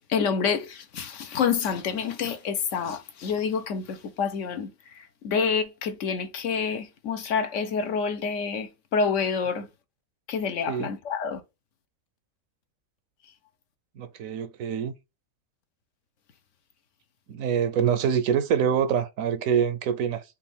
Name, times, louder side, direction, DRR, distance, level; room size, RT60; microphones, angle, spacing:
voice 1, 0.0-9.7 10.3-11.4, left 6 dB, 70° left, 1.1 m, -28 dB
voice 2, 14.0-14.9 17.3-20.2, right 8 dB, 85° right, 1.1 m, -25 dB
5.2 x 2.5 x 3.3 m
omnidirectional pair, 1.4 m